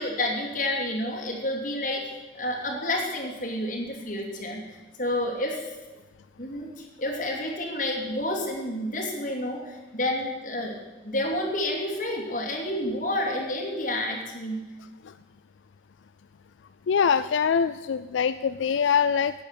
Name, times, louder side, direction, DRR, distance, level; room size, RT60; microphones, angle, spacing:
voice 1, 0.0-4.7 5.0-5.7 6.4-14.6, left 1 dB, 45° left, -1 dB, 2.7 m, -30 dB
voice 2, 16.9-19.3, left 7 dB, 80° left, 12 dB, 0.4 m, -23 dB
10.0 x 9.1 x 8.1 m, 1.2 s
head